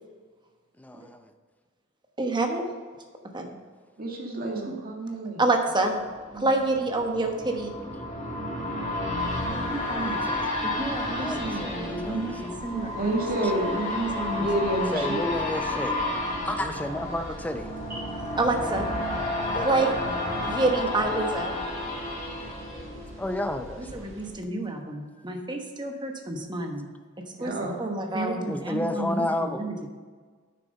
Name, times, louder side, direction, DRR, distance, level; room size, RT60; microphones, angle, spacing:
voice 1, 0.8-1.3 9.4-10.6 11.2-12.6 14.9-16.0 16.5-17.7 19.5-19.9 23.2-24.1 28.5-29.6, left 1 dB, 10° left, 7 dB, 0.5 m, -32 dB
voice 2, 2.2-2.6 3.3-3.5 4.7-4.8 5.4-5.9 6.3-7.7 9.5-10.3 10.6-13.1 13.7-14.5 16.3-16.7 18.0-18.9 19.5-20.0 20.4-21.5 23.8-26.9 27.4-27.5 27.8-29.9, right 2 dB, 20° right, 3 dB, 1.1 m, -28 dB
voice 3, 4.0-5.4 6.3-6.5 12.9-13.7 14.3-15.2 17.9-18.1 27.4-27.8, right 1 dB, 45° right, 0 dB, 1.9 m, -29 dB
sound 1, 5.9-23.7 24.1-24.2, left 1 dB, 35° left, 1.7 m, -31 dB
sound 2, 9.2-24.3, equal, 65° right, 1.7 m, -46 dB
9.2 x 6.9 x 5.4 m, 1.5 s
head